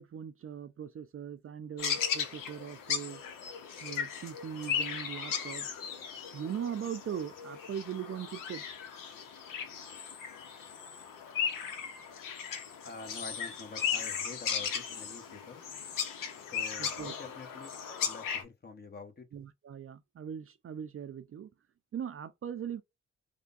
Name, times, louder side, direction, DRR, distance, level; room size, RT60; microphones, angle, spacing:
voice 1, 0.0-3.2 3.8-5.7 6.3-8.6 16.8-17.1 19.3-21.5 21.9-22.8, right 8 dB, 45° right, 0.4 m, -40 dB
sound 1, 1.8-18.4, left 7 dB, 85° left, 0.7 m, -37 dB
voice 2, 12.8-15.6 16.5-19.3, left 4 dB, 30° left, 1.0 m, -47 dB
3.4 x 2.1 x 2.5 m
supercardioid pair, 50°, 32 cm